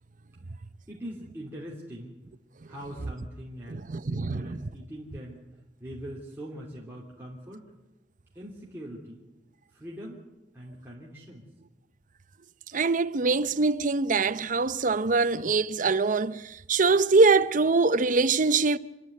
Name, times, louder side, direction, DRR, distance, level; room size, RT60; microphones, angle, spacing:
voice 1, 0.9-2.1 2.7-5.4 5.8-7.7 8.3-9.2 9.7-10.2 10.5-11.4, equal, 15° right, 3.1 m, -42 dB
voice 2, 3.7-4.6 12.7-18.8, right 3 dB, 50° right, 0.7 m, -23 dB
28.5 x 11.0 x 9.4 m
head